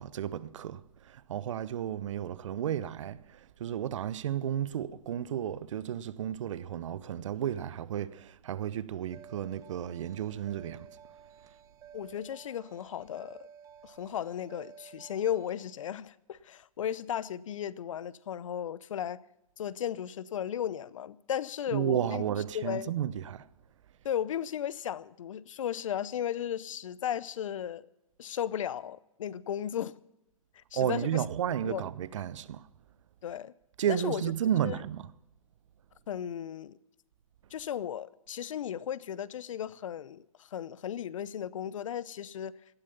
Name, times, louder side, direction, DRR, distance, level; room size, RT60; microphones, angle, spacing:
voice 1, 0.0-10.9 21.7-23.5 30.7-32.7 33.8-35.1, right 10 dB, 60° right, 1.0 m, -33 dB
sound 1, 9.1-15.7, right 8 dB, 20° right, 1.1 m, -53 dB
voice 2, 11.9-13.5 13.8-19.2 19.6-22.2 22.5-22.9 24.0-27.9 28.2-29.9 30.5-31.2 31.6-31.9 33.2-33.5 33.9-34.2 34.6-34.8 36.1-36.8 37.5-42.6, left 10 dB, 60° left, 0.8 m, -35 dB
18.5 x 13.5 x 5.5 m
hypercardioid pair, 120°, 18 cm